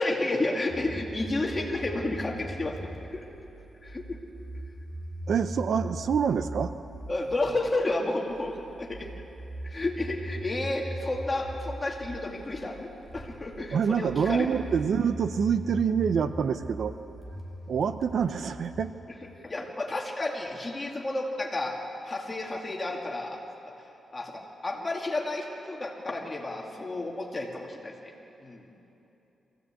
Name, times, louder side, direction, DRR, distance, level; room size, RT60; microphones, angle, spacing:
voice 1, 0.0-3.3 3.8-4.2 7.1-9.1 9.6-14.6 19.4-21.8 22.1-23.4 24.1-28.1 28.4-28.7, left 2 dB, 20° left, -1 dB, 2.3 m, -31 dB
sound 1, 0.7-18.9, right 1 dB, 20° right, 2.5 m, -40 dB
voice 2, 5.3-6.7 13.7-16.9 17.7-18.9, right 7 dB, 55° right, 11 dB, 0.6 m, -26 dB
23.0 x 16.0 x 8.4 m, 3.0 s
wide cardioid pair, 160°, 0 cm